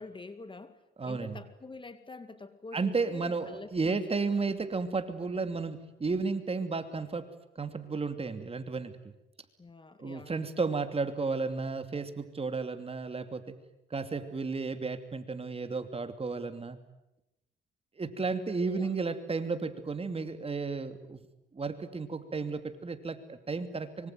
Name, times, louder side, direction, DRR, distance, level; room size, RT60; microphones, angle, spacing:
voice 1, 0.0-0.8 1.1-4.0 9.6-10.5 18.7-18.9, left 3 dB, 25° left, 11 dB, 2.0 m, -46 dB
voice 2, 1.0-1.4 2.7-7.2 7.6-8.9 10.0-13.5 13.9-16.8 18.0-21.3 21.5-24.1, right 4 dB, 30° right, 9 dB, 2.8 m, -33 dB
25.0 x 24.0 x 9.3 m, 0.88 s
cardioid pair, 90°, 20 cm